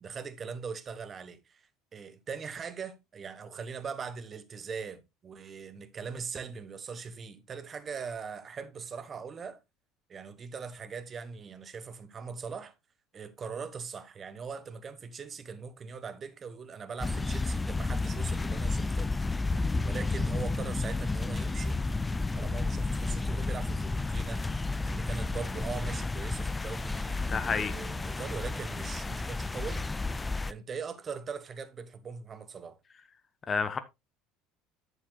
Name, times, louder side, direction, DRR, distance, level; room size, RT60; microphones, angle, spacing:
voice 1, 0.0-9.6 10.1-12.7 13.1-19.2 19.8-21.8 22.4-24.4 24.8-29.9 30.5-32.8, right 5 dB, 35° right, 1.2 m, -41 dB
sound 1, 17.0-30.5, left 3 dB, 15° left, 0.4 m, -31 dB
voice 2, 27.3-27.7 33.5-33.8, left 5 dB, 35° left, 0.9 m, -29 dB
11.0 x 7.5 x 2.3 m
hypercardioid pair, 70°, 0 cm